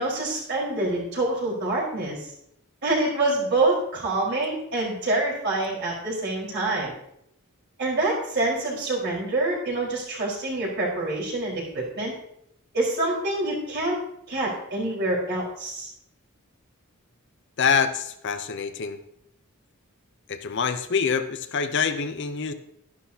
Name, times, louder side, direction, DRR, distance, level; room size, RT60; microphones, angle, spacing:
voice 1, 0.0-2.2 2.8-7.0 7.8-12.1 12.7-14.0 14.3-15.9, right 2 dB, 50° right, -4 dB, 4.4 m, -26 dB
voice 2, 17.6-19.0 20.3-22.5, left 6 dB, 55° left, 9 dB, 0.6 m, -25 dB
12.0 x 11.0 x 2.8 m, 0.75 s
head